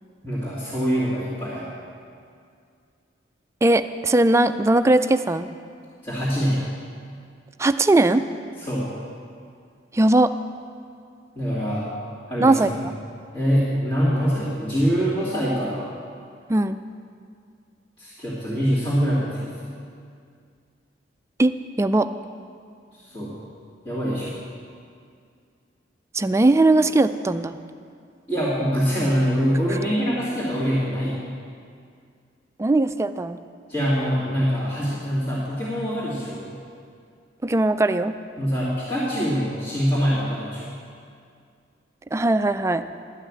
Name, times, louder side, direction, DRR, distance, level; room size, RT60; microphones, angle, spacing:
voice 1, 0.2-1.7 6.0-6.6 8.6-8.9 11.4-11.9 12.3-12.6 13.3-15.9 18.0-19.5 23.0-23.3 23.8-24.4 28.3-31.2 33.7-36.6 38.4-40.7, equal, 30° left, -12 dB, 2.4 m, -24 dB
voice 2, 3.6-5.5 7.6-8.2 9.9-10.3 12.4-12.7 16.5-16.8 21.4-22.1 26.1-27.6 32.6-33.4 37.4-38.1 42.1-42.8, right 2 dB, 15° right, 10 dB, 0.3 m, -19 dB
12.5 x 5.7 x 8.5 m, 2.3 s
head